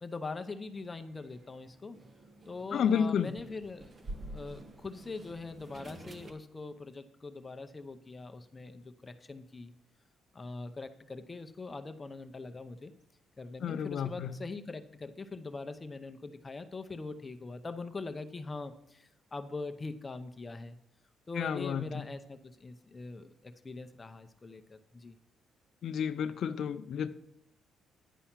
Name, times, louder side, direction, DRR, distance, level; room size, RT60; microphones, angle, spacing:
voice 1, 0.0-2.0 2.5-3.9 4.2-9.7 10.3-12.9 13.4-20.8 21.3-25.2, left 3 dB, 25° left, 9 dB, 0.8 m, -42 dB
sound 1, 0.7-6.3, right 1 dB, 35° right, 1.4 m, -49 dB
voice 2, 2.7-3.3 13.6-14.4 21.3-22.0 25.8-27.1, left 7 dB, 65° left, 9 dB, 0.6 m, -31 dB
10.0 x 5.7 x 7.3 m, 0.79 s
cardioid pair, 90°, 0 cm